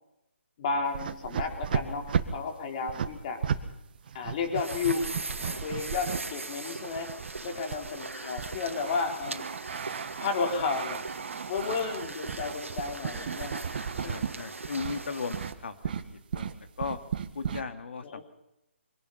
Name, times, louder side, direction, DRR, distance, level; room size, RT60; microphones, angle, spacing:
voice 1, 0.6-2.1 2.3-3.4 4.1-5.1 5.4-7.1 7.4-9.5 10.2-11.0 11.5-13.6 13.9-14.3 18.0-18.2, left 5 dB, 35° left, 4 dB, 4.2 m, -32 dB
sound 1, 0.8-3.6 4.0-6.2 6.9-14.3 14.6-15.0 15.3-15.6 15.8-17.6, right 7 dB, 45° right, 1.8 m, -35 dB
sound 2, 4.5-15.5, right 3 dB, 85° right, 2.3 m, -40 dB
voice 2, 14.0-15.8 16.3-16.5 16.8-17.0 17.3-18.2, left 5 dB, 60° left, 8 dB, 2.5 m, -36 dB
25.0 x 18.5 x 5.8 m, 0.88 s
figure-of-eight pair, 150°, 7 cm